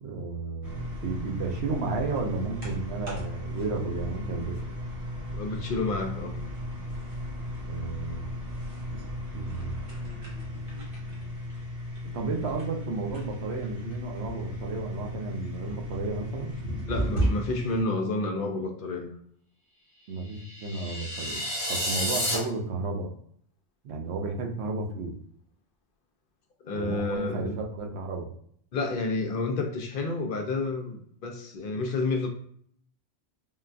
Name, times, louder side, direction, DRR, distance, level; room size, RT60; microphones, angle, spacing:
voice 1, 0.0-4.6 7.7-8.3 8.7-9.0 9.3-9.8 12.0-16.6 20.1-21.4 21.7-23.1 23.8-25.2 26.7-28.3, right 3 dB, 85° right, 2 dB, 1.0 m, -33 dB
sound 1, 0.6-17.8, equal, 55° right, 1.3 m, -35 dB
voice 2, 5.3-6.4 16.9-19.1 26.6-27.6 28.7-32.3, left 3 dB, 60° left, 3 dB, 0.7 m, -30 dB
sound 2, 20.3-22.4, left 1 dB, 20° left, 0.8 m, -30 dB
3.8 x 2.2 x 2.5 m, 0.63 s
omnidirectional pair, 1.1 m